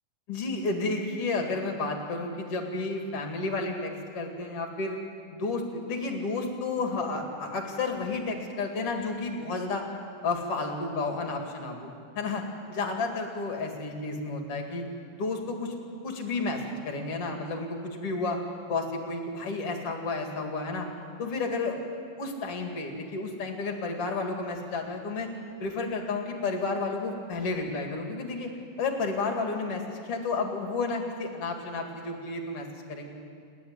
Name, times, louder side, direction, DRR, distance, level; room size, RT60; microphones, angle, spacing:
voice 1, 0.3-5.0 5.3-9.8 10.2-14.9 15.1-18.4 18.7-20.9 21.2-21.8 22.2-25.3 25.6-28.5 28.8-33.1, left 3 dB, 45° left, 2 dB, 2.9 m, -31 dB
28.5 x 10.5 x 9.7 m, 2.4 s
omnidirectional pair, 4.0 m